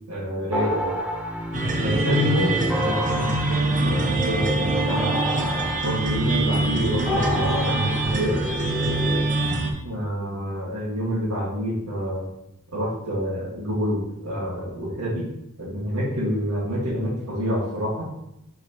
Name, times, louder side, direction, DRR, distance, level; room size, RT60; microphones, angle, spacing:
voice 1, 0.1-0.9 1.8-5.2 5.8-8.4 9.8-12.3 12.7-15.2 15.6-18.1, equal, 85° right, -5 dB, 1.8 m, -27 dB
sound 1, 0.5-9.2, equal, 5° right, 0.8 m, -28 dB
sound 2, 1.5-9.7, right 2 dB, 35° right, 0.8 m, -24 dB
6.0 x 5.8 x 2.9 m, 0.83 s
head